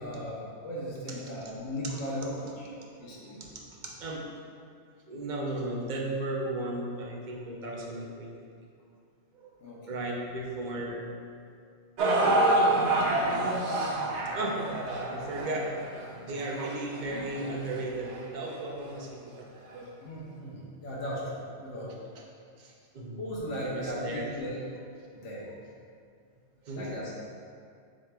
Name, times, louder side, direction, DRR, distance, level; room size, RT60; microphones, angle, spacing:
voice 1, 0.0-2.7 3.0-3.4 9.6-10.0 20.0-22.0 23.2-24.6 25.1-25.5 26.8-27.1, equal, 90° left, -6 dB, 1.1 m, -37 dB
voice 2, 2.9-4.4 5.1-8.4 9.3-9.5 9.9-11.1 14.3-14.7 15.1-15.8 16.2-19.6 22.2-22.3 22.6-23.2 23.6-24.3 26.6-26.9, right 2 dB, 50° right, -1 dB, 0.6 m, -36 dB
sound 1, 12.0-18.2 18.9-19.0 19.7-19.8, right 2 dB, 75° right, 0.9 m, -28 dB
7.4 x 3.1 x 2.2 m, 2.3 s
omnidirectional pair, 1.2 m